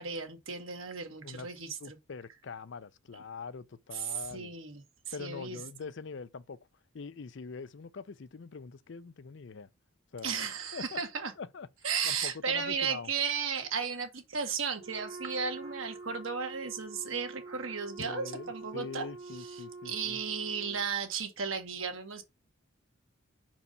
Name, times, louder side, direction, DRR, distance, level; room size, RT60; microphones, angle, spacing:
voice 1, 0.0-2.0 3.1-3.2 3.9-5.6 10.2-11.3 11.8-19.1 19.4-19.6 19.8-22.2, right 6 dB, 80° right, 1.6 m, -35 dB
voice 2, 1.2-4.5 5.1-6.7 6.9-9.7 10.1-10.4 10.7-11.0 11.4-11.7 12.0-13.1 18.0-20.2, left 4 dB, 60° left, 0.5 m, -43 dB
Wind instrument woodwind instrument, 14.7-20.9, right 3 dB, 40° right, 2.7 m, -46 dB
5.4 x 4.7 x 5.3 m
head